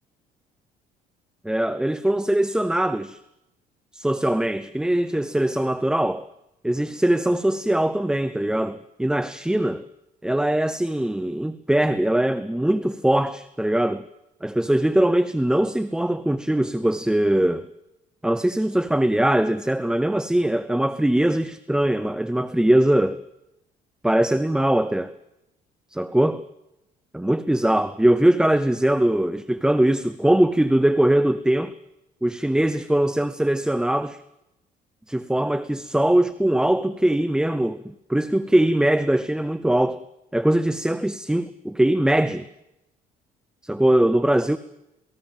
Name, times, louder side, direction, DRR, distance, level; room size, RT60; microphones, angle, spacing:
voice 1, 1.4-3.2 3.9-6.3 6.6-9.8 10.2-14.0 14.4-17.7 18.2-23.2 24.0-25.1 25.9-26.4 27.1-31.7 32.2-34.2 35.1-40.0 40.3-42.5 43.6-44.6, right 1 dB, 5° right, 0.8 m, -21 dB
27.5 x 19.5 x 7.5 m
cardioid pair, 110°, 17 cm